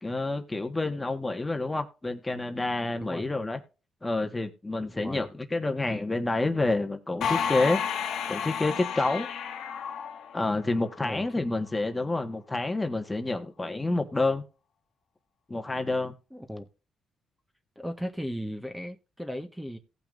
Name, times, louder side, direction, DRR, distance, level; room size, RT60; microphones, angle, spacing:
voice 1, 0.0-3.6 4.0-7.8 8.3-9.3 10.3-14.4 15.5-16.1, left 2 dB, 15° left, 1.5 m, -28 dB
voice 2, 4.8-5.3 11.0-11.4 16.3-16.7 17.7-19.8, equal, 5° right, 1.4 m, -37 dB
sound 1, 7.2-10.9, left 7 dB, 70° left, 1.7 m, -31 dB
17.5 x 5.9 x 2.6 m
cardioid pair, 90°, 0 cm